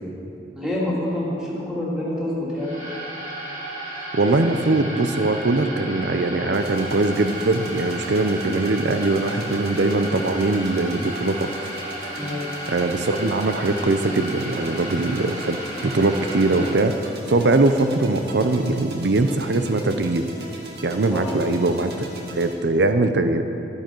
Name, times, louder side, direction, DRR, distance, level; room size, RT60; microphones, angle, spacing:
voice 1, 0.5-2.7 12.2-12.5 21.1-21.3, left 1 dB, 5° right, -7 dB, 2.9 m, -27 dB
sound 1, 2.5-16.7, right 1 dB, 45° right, 2.5 m, -34 dB
voice 2, 4.1-11.5 12.7-15.6 15.8-16.9 17.3-20.2 20.8-23.4, right 2 dB, 85° right, 8 dB, 0.6 m, -21 dB
sound 2, 6.5-22.5, right 2 dB, 65° right, 2.1 m, -40 dB
14.0 x 12.0 x 4.6 m, 2.8 s
head